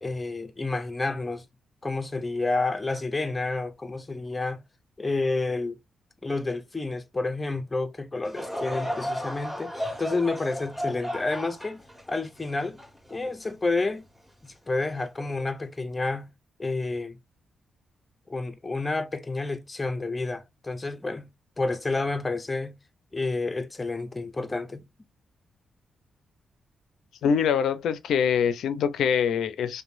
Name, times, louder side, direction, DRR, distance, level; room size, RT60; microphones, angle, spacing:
voice 1, 0.0-1.4 1.8-4.6 5.0-5.8 6.2-12.8 13.1-14.0 14.4-16.3 16.6-17.2 18.3-21.3 21.6-22.8 23.1-24.8, left 3 dB, 25° left, 0.6 m, -30 dB
Laughter / Crowd, 8.2-13.7 14.3-14.4 15.2-15.4, equal, 15° right, 1.7 m, -34 dB
voice 2, 27.2-29.8, left 7 dB, 80° left, 0.4 m, -24 dB
3.0 x 2.2 x 2.5 m
supercardioid pair, 60°, 0 cm